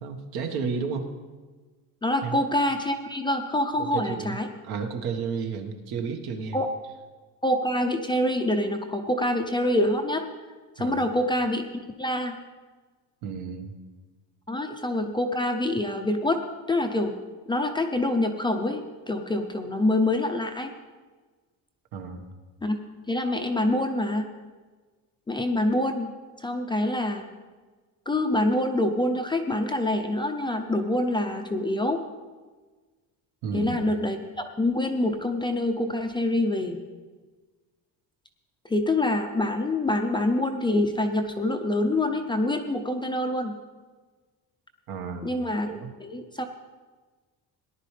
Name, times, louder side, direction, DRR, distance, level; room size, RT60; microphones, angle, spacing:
voice 1, 0.0-1.1 2.2-2.4 3.8-4.4 4.6-6.6 10.8-11.0 13.2-13.7 21.9-22.3 33.4-33.9 44.9-45.3 45.7-45.9, right 5 dB, 70° right, 5 dB, 1.5 m, -32 dB
voice 2, 2.0-4.5 6.5-6.7 7.4-10.2 10.8-11.6 12.0-12.4 14.5-16.4 16.7-17.2 17.5-20.7 22.6-22.8 23.1-24.3 25.3-26.1 26.4-27.3 28.1-32.0 33.5-36.8 38.7-43.5 45.2-45.7 46.0-46.5, left 1 dB, 10° left, 4 dB, 0.5 m, -26 dB
18.0 x 11.0 x 3.3 m, 1.4 s
cardioid pair, 160°, 40 cm